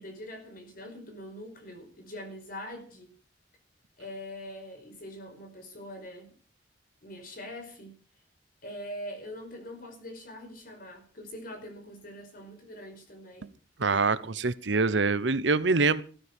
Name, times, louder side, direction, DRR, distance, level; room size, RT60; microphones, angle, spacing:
voice 1, 0.0-3.1 4.0-6.3 7.0-7.9 8.6-13.5, left 1 dB, 50° left, 6 dB, 5.0 m, -43 dB
voice 2, 13.8-16.0, right 4 dB, 70° right, 16 dB, 0.9 m, -25 dB
15.0 x 13.5 x 5.3 m, 0.39 s
head